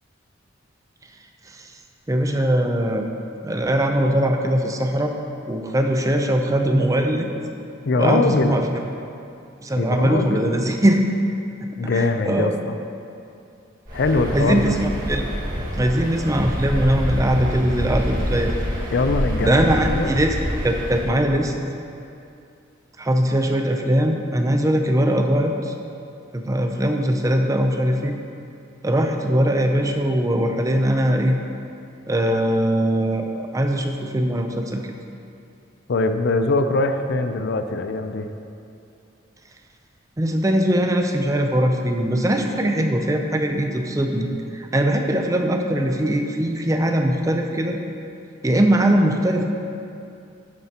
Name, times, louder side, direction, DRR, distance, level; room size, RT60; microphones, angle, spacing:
voice 1, 2.1-3.1 3.4-5.1 5.5-7.3 8.0-8.8 9.6-11.0 11.6-12.6 14.3-15.3 15.7-18.6 19.4-20.3 20.6-21.5 23.0-25.7 26.3-28.2 28.8-31.4 32.1-34.8 40.2-44.3 44.5-47.8 48.4-49.5, right 1 dB, 15° right, 3 dB, 0.5 m, -21 dB
voice 2, 7.9-8.6 9.8-10.5 11.8-12.5 13.9-14.7 18.9-20.1 35.9-38.3, left 3 dB, 60° left, 8 dB, 0.4 m, -22 dB
Waves surf, 13.9-21.2, equal, 45° right, 1.8 m, -27 dB
11.0 x 7.6 x 2.9 m, 2.6 s
head